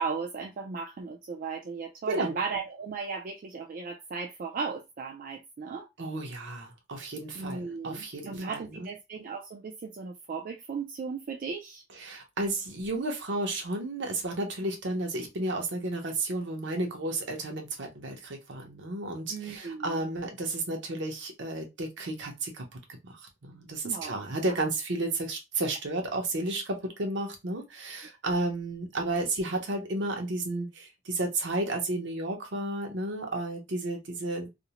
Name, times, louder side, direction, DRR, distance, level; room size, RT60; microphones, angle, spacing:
voice 1, 0.0-5.9 7.3-11.8 19.3-20.0 23.8-24.5, right 5 dB, 45° right, 0.3 m, -36 dB
voice 2, 2.1-2.4 6.0-8.9 12.0-22.6 23.0-34.5, right 2 dB, 65° right, 0.7 m, -32 dB
2.5 x 2.0 x 2.8 m
head